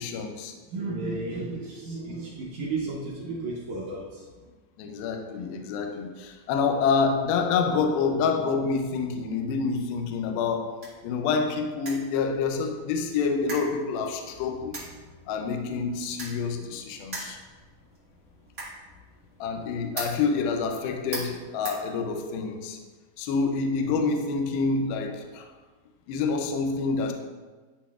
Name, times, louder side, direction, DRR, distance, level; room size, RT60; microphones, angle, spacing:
voice 1, 0.0-0.5 4.8-10.8 11.0-14.7 15.3-17.4 19.4-22.8 23.2-25.5 26.1-27.1, left 5 dB, 80° left, 2.3 m, -27 dB
voice 2, 0.7-4.5, right 3 dB, 85° right, 1.6 m, -33 dB
sound 1, 10.2-22.5, right 2 dB, 45° right, 0.9 m, -43 dB
11.0 x 4.1 x 2.4 m
omnidirectional pair, 4.5 m